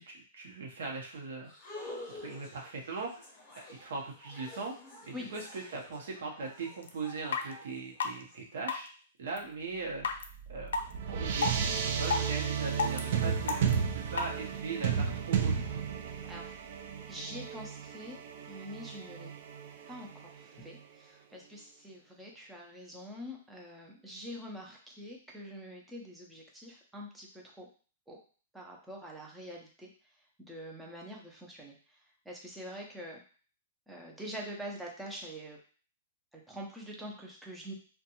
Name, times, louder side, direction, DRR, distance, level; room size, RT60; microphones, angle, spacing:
voice 1, 0.0-1.5 2.2-3.3 3.6-4.8 5.1-8.9 9.2-10.7 11.1-15.8, right 4 dB, 70° right, 0 dB, 0.8 m, -40 dB
sound 1, 1.4-8.4, left 2 dB, 20° left, 0.9 m, -49 dB
sound 2, 6.8-6.9 7.3-7.4 8.0-8.1 8.7-8.9 9.4-9.5 10.0-10.2 10.7-10.8 11.4-11.6 12.0-12.3 12.8-13.0 13.5-13.7 14.2-14.3, left 5 dB, 85° left, 0.4 m, -29 dB
sound 3, 10.0-20.8, right 7 dB, 55° right, 0.4 m, -34 dB
voice 2, 17.1-18.2 18.5-19.3 19.9-27.7 28.1-28.2 28.5-29.9 30.4-31.8 32.3-33.2 33.9-35.6 36.3-37.7, equal, 5° right, -2 dB, 0.5 m, -45 dB
2.6 x 2.2 x 2.8 m, 0.40 s
hypercardioid pair, 160°, 0 cm